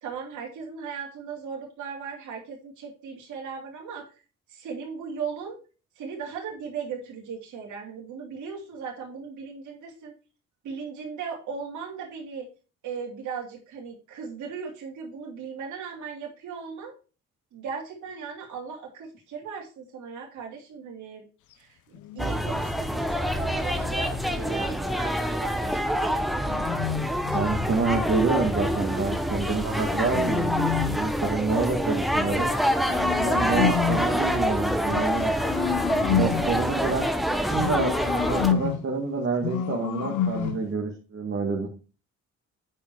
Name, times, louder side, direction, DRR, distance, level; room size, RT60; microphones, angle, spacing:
voice 1, 0.0-4.0 4.5-5.6 6.0-10.1 10.6-12.5 12.8-16.9 17.5-21.2 21.6-26.2, right 6 dB, 75° right, -2 dB, 3.1 m, -37 dB
sound 1, 21.9-24.3 26.0-27.8 29.2-31.2 32.2-34.2 34.9-36.6 37.5-38.9 39.4-40.7, left 9 dB, 80° left, 0.8 m, -30 dB
sound 2, 22.2-38.5, equal, ahead, 1.1 m, -26 dB
voice 2, 27.3-32.5 33.1-35.3 35.9-41.7, right 4 dB, 45° right, -1 dB, 2.2 m, -28 dB
8.7 x 5.1 x 4.7 m, 0.34 s
cardioid pair, 90°, 30 cm